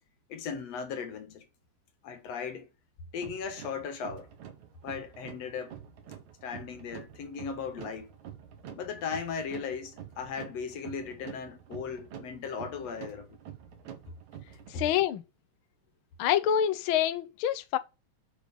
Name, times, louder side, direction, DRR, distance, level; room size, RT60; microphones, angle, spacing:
voice 1, 0.3-1.5 2.0-2.7 3.1-4.3 4.8-5.8 6.4-8.1 8.8-13.4 14.7-14.8, left 6 dB, 60° left, 2.2 m, -37 dB
sound 1, 3.2-15.0, right 9 dB, 65° right, 2.8 m, -47 dB
voice 2, 14.7-15.2 16.2-17.8, left 10 dB, 75° left, 1.2 m, -26 dB
8.1 x 6.9 x 8.3 m
omnidirectional pair, 3.9 m